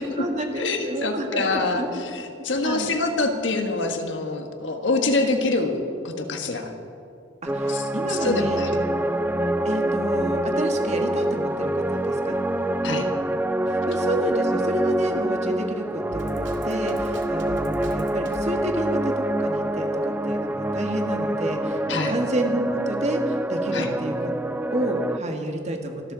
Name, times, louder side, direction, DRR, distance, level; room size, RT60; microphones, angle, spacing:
voice 1, 0.0-2.0 2.4-2.9 7.4-8.8 9.6-12.3 13.7-26.1, right 1 dB, 35° right, 3 dB, 1.7 m, -30 dB
voice 2, 0.6-6.7 7.6-8.7 12.8-13.1 21.9-22.1 23.7-23.9, left 3 dB, 70° left, 5 dB, 1.5 m, -26 dB
sound 1, 7.5-25.2, right 1 dB, 10° right, 0.3 m, -26 dB
Drum kit, 16.1-18.5, right 1 dB, 70° right, 2.0 m, -37 dB
26.0 x 12.5 x 4.0 m, 2.6 s
head